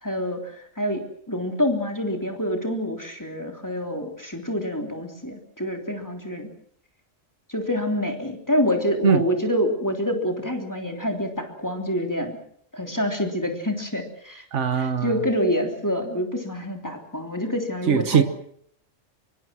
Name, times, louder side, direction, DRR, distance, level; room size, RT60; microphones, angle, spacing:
voice 1, 0.0-6.5 7.5-12.3 12.7-14.4 14.7-18.2, equal, 15° left, 3 dB, 3.3 m, -27 dB
voice 2, 14.5-15.1 17.9-18.2, right 7 dB, 65° right, 11 dB, 1.6 m, -20 dB
24.5 x 24.0 x 6.2 m, 0.64 s
omnidirectional pair, 1.3 m